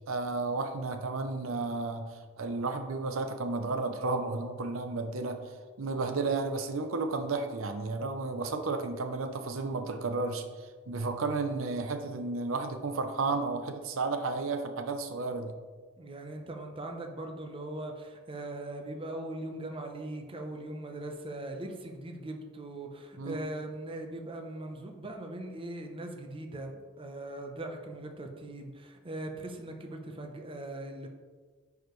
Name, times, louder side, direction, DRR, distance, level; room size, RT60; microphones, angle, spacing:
voice 1, 0.1-5.4 5.8-15.5 23.2-23.4, right 3 dB, 80° right, 7 dB, 0.6 m, -32 dB
voice 2, 16.0-31.1, right 1 dB, 25° right, 3 dB, 0.7 m, -40 dB
9.9 x 4.8 x 3.1 m, 1.4 s
head